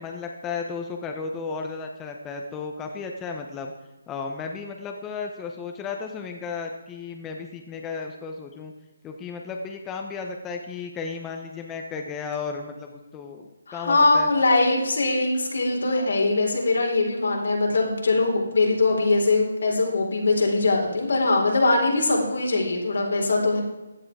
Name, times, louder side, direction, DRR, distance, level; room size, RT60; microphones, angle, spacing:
voice 1, 0.0-3.7 4.1-8.7 9.0-14.3, left 5 dB, 15° left, 3 dB, 1.0 m, -34 dB
voice 2, 13.7-23.6, left 2 dB, 75° left, 0 dB, 4.4 m, -22 dB
15.5 x 10.0 x 4.9 m, 1.1 s
figure-of-eight pair, 150°, 0 cm